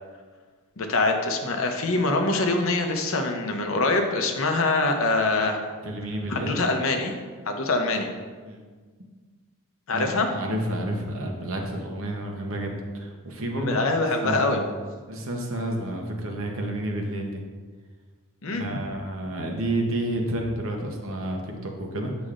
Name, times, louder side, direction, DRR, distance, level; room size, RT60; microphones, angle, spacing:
voice 1, 0.8-5.6 6.3-7.1 7.4-8.1 9.9-10.3 13.6-14.6 18.4-18.7, left 3 dB, 65° left, 4 dB, 0.7 m, -24 dB
voice 2, 5.8-6.6 8.4-8.6 9.9-13.8 14.2-14.6 15.1-17.4 18.5-22.1, right 1 dB, 65° right, 1 dB, 0.9 m, -30 dB
8.1 x 5.1 x 2.5 m, 1.5 s
head